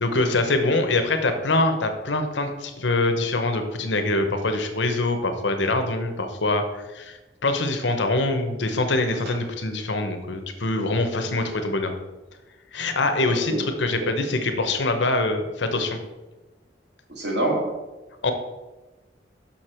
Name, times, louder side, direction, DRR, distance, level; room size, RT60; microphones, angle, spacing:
voice 1, 0.0-11.9 12.7-16.0 18.2-18.3, left 2 dB, 80° left, 6 dB, 0.9 m, -24 dB
voice 2, 13.2-13.6 14.0-14.1 17.1-17.7, right 1 dB, 65° right, -1 dB, 1.9 m, -26 dB
6.5 x 5.8 x 4.4 m, 1.1 s
head